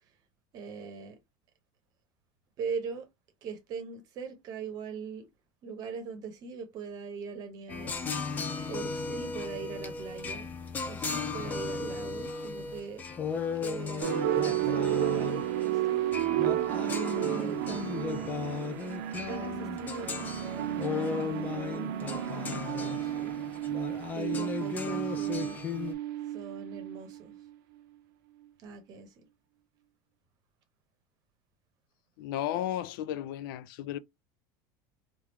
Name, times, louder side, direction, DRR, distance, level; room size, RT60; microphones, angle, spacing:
voice 1, 0.5-1.2 2.6-3.1 3.4-5.3 5.6-8.0 8.7-10.5 10.9-13.0 13.6-16.1 17.0-18.4 19.3-23.3 24.1-25.6 26.3-27.4 28.6-29.3, right 5 dB, 35° right, 0.8 m, -41 dB
sound 1, 7.7-25.9, left 5 dB, 15° left, 0.4 m, -36 dB
sound 2, 14.0-27.4, right 12 dB, 85° right, 0.7 m, -32 dB
voice 2, 32.2-34.0, left 11 dB, 85° left, 0.4 m, -34 dB
3.3 x 2.4 x 2.9 m
cardioid pair, 175°, 11 cm